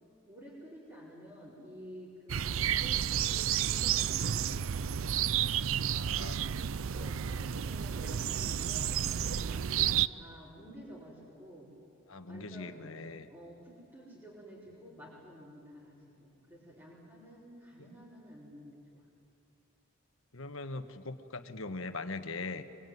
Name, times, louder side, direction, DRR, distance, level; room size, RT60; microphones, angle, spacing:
voice 1, 0.3-4.9 6.9-9.0 9.4-11.7 12.3-12.8 13.3-19.1, equal, 15° right, -8 dB, 5.2 m, -51 dB
sound 1, 2.3-10.1, right 9 dB, 80° right, 0.5 m, -31 dB
voice 2, 5.8-6.4 10.1-10.3 12.1-13.3 20.3-22.6, left 3 dB, 80° left, 9 dB, 1.4 m, -41 dB
24.0 x 23.5 x 9.4 m, 2.7 s
head